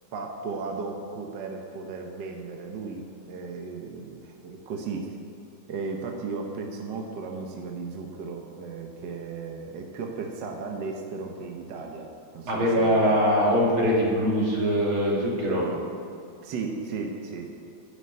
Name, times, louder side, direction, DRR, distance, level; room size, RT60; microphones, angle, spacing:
voice 1, 0.1-5.2 5.7-12.1 12.3-13.0 16.4-17.5, right 4 dB, 65° right, 2 dB, 1.5 m, -35 dB
voice 2, 12.4-15.7, equal, 85° right, -4 dB, 3.5 m, -22 dB
11.0 x 6.9 x 8.8 m, 2.6 s
omnidirectional pair, 2.2 m